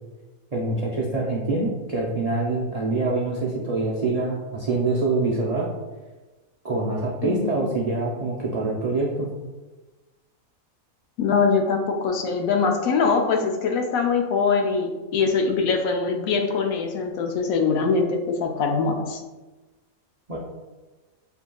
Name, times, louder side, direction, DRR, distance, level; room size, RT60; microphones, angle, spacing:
voice 1, 0.5-5.7 6.6-9.3 20.3-20.4, right 3 dB, 80° right, -4 dB, 0.3 m, -25 dB
voice 2, 7.2-7.7 11.2-19.2, left 5 dB, 75° left, 3 dB, 1.0 m, -23 dB
6.8 x 2.7 x 2.2 m, 1.2 s
omnidirectional pair, 1.5 m